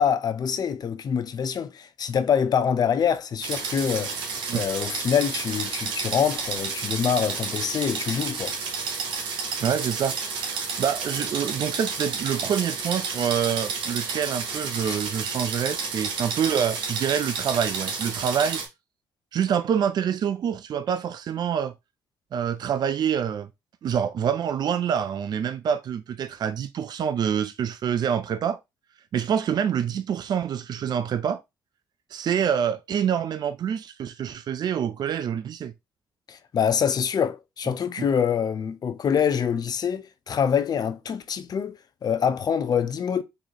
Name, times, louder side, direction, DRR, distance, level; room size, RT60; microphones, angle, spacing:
voice 1, 0.0-4.2 4.5-8.5 14.8-15.0 36.3-43.2, left 7 dB, 55° left, 0.6 m, -25 dB
sound 1, 3.4-18.7, right 5 dB, 80° right, 1.1 m, -31 dB
voice 2, 9.6-18.6 19.3-21.7 22.3-23.5 23.8-28.6 29.1-31.4 32.1-35.7 38.0-38.1, right 8 dB, 60° right, 0.4 m, -26 dB
3.9 x 3.1 x 2.8 m
supercardioid pair, 55°, 8 cm